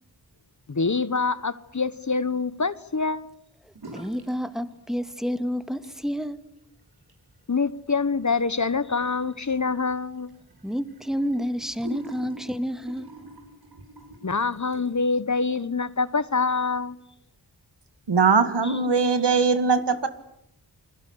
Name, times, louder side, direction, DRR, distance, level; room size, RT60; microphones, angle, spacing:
voice 1, 0.7-3.3 7.5-10.3 14.2-17.0, left 4 dB, 45° left, 1.2 m, -25 dB
voice 2, 3.6-6.5 10.6-13.1, equal, ahead, 2.0 m, -30 dB
sound 1, 3.7-4.4 4.6-5.3 5.7-15.1, right 2 dB, 65° right, 5.9 m, -46 dB
voice 3, 18.1-20.1, right 5 dB, 80° right, 2.1 m, -20 dB
29.5 x 21.5 x 8.1 m
cardioid pair, 45°, 41 cm